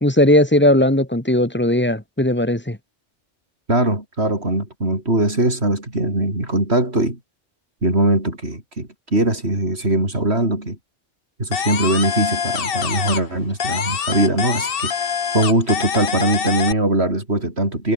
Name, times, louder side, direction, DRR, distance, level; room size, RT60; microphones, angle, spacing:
voice 1, 0.0-2.8, left 1 dB, 10° left, 2.8 m, -17 dB
voice 2, 3.7-7.2 7.8-10.8 11.4-14.9 15.3-17.9, right 1 dB, 55° right, 6.8 m, -21 dB
sound 1, 11.5-13.3 13.6-16.7, left 7 dB, 50° left, 1.1 m, -24 dB
omnidirectional pair, 1.3 m